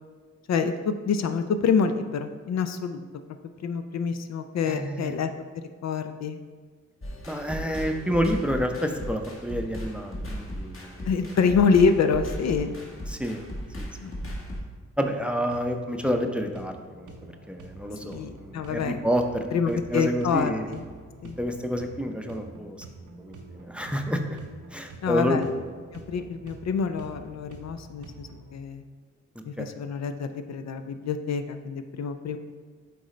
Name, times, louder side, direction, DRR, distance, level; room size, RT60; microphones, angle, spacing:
voice 1, 0.5-3.1 3.6-5.3 5.8-6.4 11.1-12.8 14.0-14.1 18.0-19.1 19.5-20.8 21.2-21.4 25.0-25.5 25.9-28.8 29.4-32.4, left 5 dB, 65° left, 8 dB, 0.4 m, -26 dB
voice 2, 4.7-5.2 7.3-11.1 13.1-13.4 13.8-13.9 15.0-20.7 21.4-22.8 23.2-24.4 24.7-25.4 29.6-29.7, equal, 5° right, 4 dB, 0.6 m, -29 dB
sound 1, 7.0-14.6, equal, 45° left, 1.5 m, -37 dB
sound 2, 15.2-28.5, right 3 dB, 85° right, 0.7 m, -47 dB
7.7 x 3.9 x 3.2 m, 1.5 s
cardioid pair, 60°, 29 cm